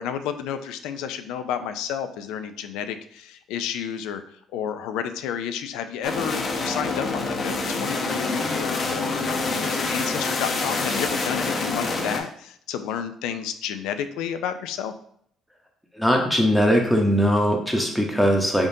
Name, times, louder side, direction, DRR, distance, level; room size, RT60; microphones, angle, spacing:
voice 1, 0.0-4.2 4.5-14.9, left 8 dB, 85° left, 9 dB, 0.3 m, -31 dB
sound 1, 6.0-12.2, left 3 dB, 45° left, 0.7 m, -26 dB
voice 2, 16.0-18.7, equal, ahead, 1 dB, 0.8 m, -20 dB
3.7 x 3.5 x 2.7 m, 0.67 s
cardioid pair, 85°, 0 cm